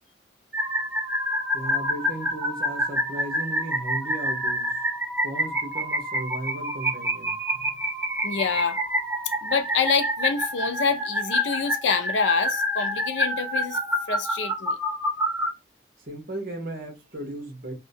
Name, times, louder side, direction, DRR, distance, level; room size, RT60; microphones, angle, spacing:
sound 1, 0.5-15.5, equal, 10° right, 0.4 m, -27 dB
voice 1, 1.5-4.8 5.2-7.4 16.1-17.7, right 2 dB, 50° right, 1.0 m, -35 dB
voice 2, 8.2-8.8 9.4-13.8 14.1-14.8, left 5 dB, 85° left, 0.5 m, -26 dB
2.7 x 2.2 x 2.6 m
head